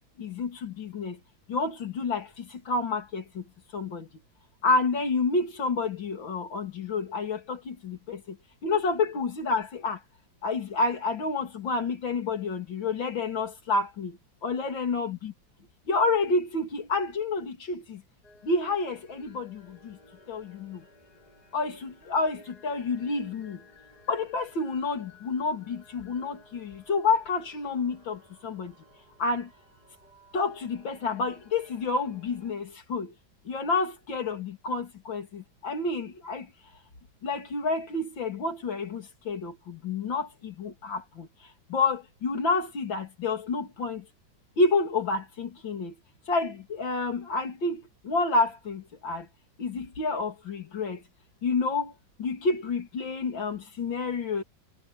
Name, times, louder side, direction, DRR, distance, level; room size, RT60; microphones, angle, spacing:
voice 1, 0.2-1.2 1.5-3.4 3.7-4.1 4.6-8.2 8.6-10.0 10.4-14.1 14.4-15.3 15.9-18.0 18.4-20.0 20.3-20.8 21.5-23.6 24.1-28.7 29.2-29.5 30.3-33.1 33.5-36.5 37.2-41.3 41.7-44.0 44.6-45.9 46.3-49.3 49.6-51.0 51.4-51.9 52.2-54.4, left 3 dB, 85° left, 3.6 m, -29 dB
sound 1, 18.2-32.5, left 2 dB, 55° left, 7.9 m, -57 dB
omnidirectional pair, 2.0 m